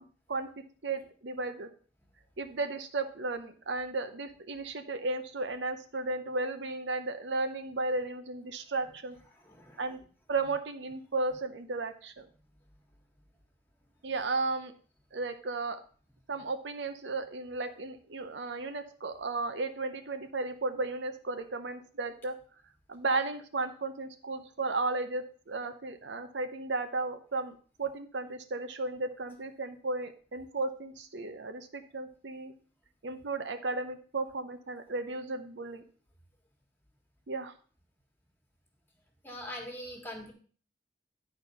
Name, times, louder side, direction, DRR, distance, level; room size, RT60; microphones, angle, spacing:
voice 1, 0.0-1.7 2.4-9.2 9.8-10.0 10.3-12.3 14.0-14.7 15.1-15.8 16.3-22.4 22.9-32.5 33.0-35.8 37.3-37.5, right 3 dB, 75° right, 7 dB, 0.8 m, -34 dB
voice 2, 9.3-10.0 39.2-40.3, left 1 dB, 10° left, 2 dB, 1.6 m, -43 dB
10.5 x 4.4 x 5.3 m, 0.42 s
head